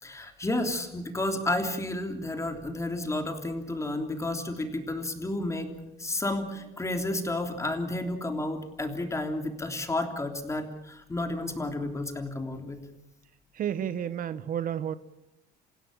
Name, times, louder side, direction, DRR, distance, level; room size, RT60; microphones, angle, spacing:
voice 1, 0.0-5.7 6.0-12.8, left 2 dB, 15° left, 5 dB, 3.2 m, -31 dB
voice 2, 13.5-14.9, right 9 dB, 55° right, 14 dB, 0.9 m, -31 dB
28.5 x 16.5 x 7.3 m, 0.89 s
cardioid pair, 110°, 17 cm